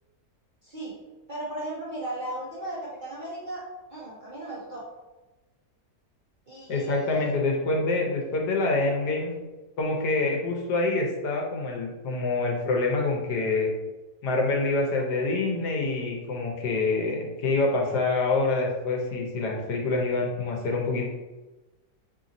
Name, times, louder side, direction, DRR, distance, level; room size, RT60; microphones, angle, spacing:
voice 1, 0.6-1.0 1.3-3.6 3.9-4.9 6.5-7.4, right 1 dB, 50° right, -7 dB, 0.6 m, -36 dB
voice 2, 6.7-9.3 9.8-13.7 14.2-21.1, left 3 dB, 85° left, 0 dB, 1.4 m, -26 dB
3.3 x 2.5 x 4.0 m, 1.1 s
omnidirectional pair, 1.7 m